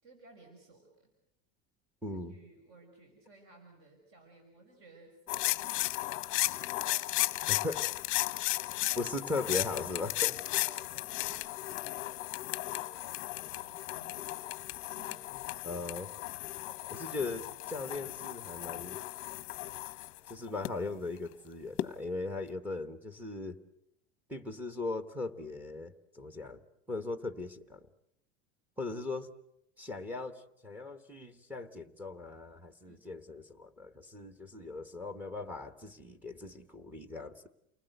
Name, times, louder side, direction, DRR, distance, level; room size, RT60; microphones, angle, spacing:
voice 1, 0.0-1.1 2.1-6.2 7.1-7.8 8.3-9.0 10.6-12.2 12.5-15.3 16.7-16.9 32.8-33.1, right 2 dB, 45° right, 3 dB, 5.7 m, -59 dB
voice 2, 2.0-2.3 7.5-7.9 8.9-10.4 15.6-16.1 16.9-19.0 20.3-23.6 24.3-26.6 26.9-27.8 28.8-29.3 29.8-37.5, left 3 dB, 5° right, 8 dB, 1.3 m, -39 dB
sound 1, 5.3-20.7 21.8-21.9, left 18 dB, 40° left, 0.9 m, -35 dB
29.5 x 20.0 x 8.0 m, 0.79 s
cardioid pair, 165°, 32 cm